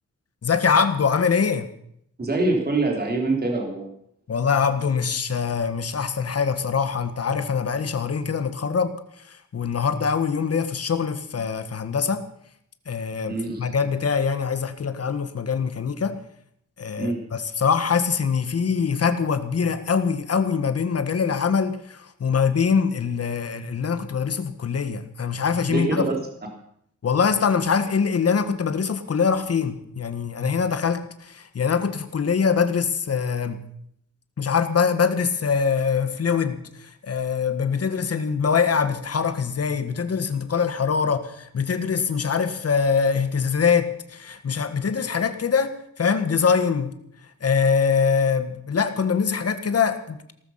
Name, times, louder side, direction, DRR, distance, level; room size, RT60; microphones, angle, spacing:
voice 1, 0.4-1.7 4.3-8.9 9.3-12.2 12.8-16.2 16.8-26.1 27.0-33.6 34.4-47.0 47.4-50.3, left 6 dB, 50° left, 10 dB, 1.6 m, -23 dB
voice 2, 2.2-3.9 13.3-13.7 17.0-17.2 25.7-26.1, right 2 dB, 30° right, 1 dB, 3.6 m, -24 dB
18.5 x 13.0 x 5.8 m, 0.71 s
wide cardioid pair, 135°, 31 cm